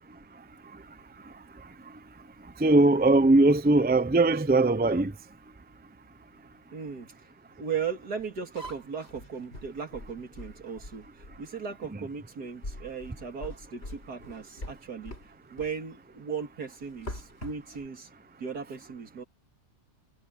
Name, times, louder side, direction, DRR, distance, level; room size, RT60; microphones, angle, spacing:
voice 1, 2.6-5.1 11.9-12.1, right 2 dB, 10° right, 0.4 m, -20 dB
voice 2, 6.7-7.1 7.6-11.0 11.4-15.1 15.5-18.1 18.4-19.2, right 6 dB, 75° right, 3.1 m, -37 dB
sound 1, 8.2-11.5 12.1-12.3 12.6-15.3 15.6-15.8 16.8-17.9, left 1 dB, 40° left, 5.3 m, -43 dB
omnidirectional pair, 1.7 m